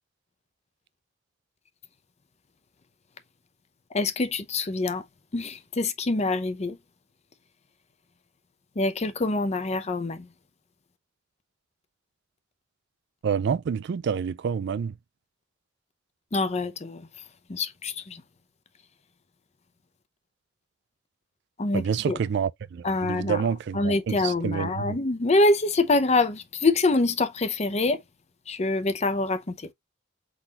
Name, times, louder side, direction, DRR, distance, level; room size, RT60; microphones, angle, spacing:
voice 1, 3.9-5.0 5.3-6.8 8.8-10.3 16.3-17.1 17.5-18.2 21.6-22.2 22.8-23.4 23.7-28.0 28.5-29.7, left 2 dB, 35° left, 0.6 m, -25 dB
voice 2, 13.2-14.9 21.7-25.0, right 6 dB, 60° right, 0.3 m, -28 dB
4.1 x 4.0 x 2.8 m
head